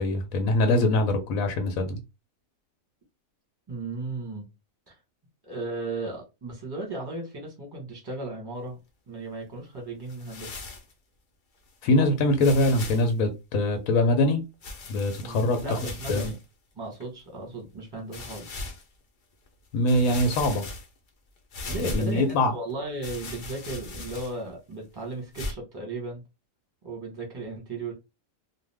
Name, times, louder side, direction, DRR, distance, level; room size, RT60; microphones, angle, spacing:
voice 1, 0.0-2.0 11.8-14.4 14.9-15.6 16.1-16.3 19.7-20.6 21.8-22.5, left 1 dB, 90° left, 1.1 m, -23 dB
voice 2, 3.7-4.5 4.9-5.0 5.4-8.8 9.1-10.6 12.0-12.1 15.2-16.4 16.7-18.5 21.7-26.2 26.8-27.9, right 2 dB, 20° right, 1.0 m, -36 dB
sound 1, 10.1-10.9 11.7-11.8 12.4-13.1 14.6-16.4 17.0-17.1 18.1-18.8 19.5-19.6 19.9-21.1 21.5-22.3 23.0-24.5 25.3-25.5, left 2 dB, 50° left, 0.7 m, -38 dB
2.4 x 2.4 x 3.3 m
omnidirectional pair, 1.4 m